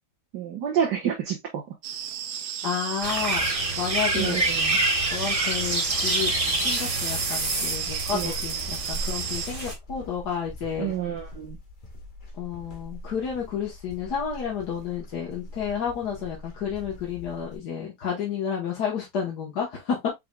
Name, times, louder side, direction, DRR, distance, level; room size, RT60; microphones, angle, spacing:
voice 1, 0.3-1.6 4.1-4.8 8.1-8.3 10.8-11.6, right 9 dB, 90° right, 1.7 m, -29 dB
sound 1, 1.8-9.5, right 9 dB, 70° right, 1.1 m, -34 dB
voice 2, 2.6-3.4 3.7-4.4 5.1-6.3 6.6-10.9 12.4-20.1, left 7 dB, 75° left, 1.7 m, -31 dB
sound 2, 3.0-9.7, right 2 dB, 20° right, 1.3 m, -27 dB
sound 3, 7.3-17.6, equal, 35° left, 1.0 m, -42 dB
5.5 x 3.7 x 2.2 m
omnidirectional pair, 1.8 m